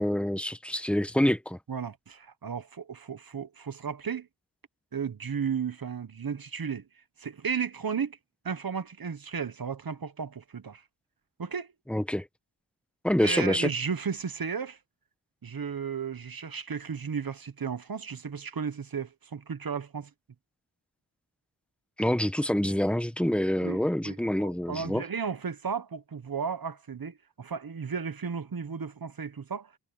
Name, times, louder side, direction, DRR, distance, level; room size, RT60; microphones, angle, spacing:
voice 1, 0.0-1.6 11.9-12.3 13.0-13.7 22.0-25.0, left 1 dB, 5° left, 1.0 m, -26 dB
voice 2, 1.7-4.3 4.9-6.8 7.2-8.2 8.4-10.8 11.4-11.7 13.2-14.8 15.4-20.1 23.6-29.7, right 6 dB, 50° right, 1.0 m, -34 dB
wide cardioid pair, 85°, 44 cm